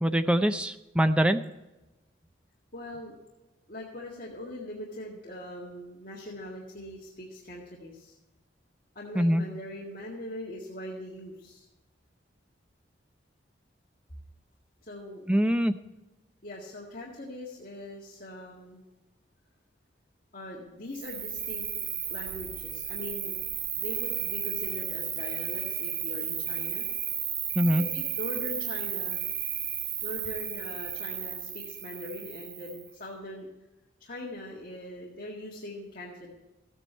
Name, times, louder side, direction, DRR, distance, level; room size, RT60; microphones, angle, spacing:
voice 1, 0.0-1.4 9.2-9.4 15.3-15.7 27.6-27.8, equal, 5° right, 9 dB, 0.5 m, -23 dB
voice 2, 2.7-3.2 3.7-8.1 9.0-11.7 14.8-15.3 16.4-18.8 20.3-21.7 22.1-23.3 23.8-26.9 27.7-29.2 30.0-33.5 34.0-36.3, left 1 dB, 45° left, -5 dB, 1.9 m, -41 dB
Cricket, 20.9-32.9, right 9 dB, 60° right, 1.1 m, -34 dB
14.0 x 9.2 x 4.4 m, 1.0 s
head